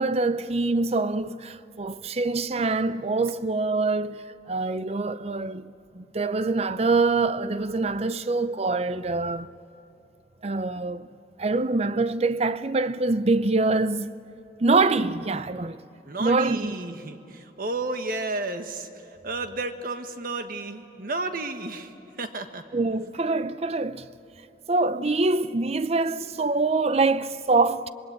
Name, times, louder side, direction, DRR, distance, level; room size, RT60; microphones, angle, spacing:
voice 1, 0.0-9.5 10.4-11.1 11.4-14.1 14.6-15.8 16.2-16.8 22.7-24.1 24.7-27.9, right 3 dB, 35° right, 0.6 m, -25 dB
voice 2, 16.0-18.9 19.2-21.9 22.2-22.6, right 2 dB, 55° right, 1.5 m, -32 dB
26.0 x 21.0 x 8.6 m
head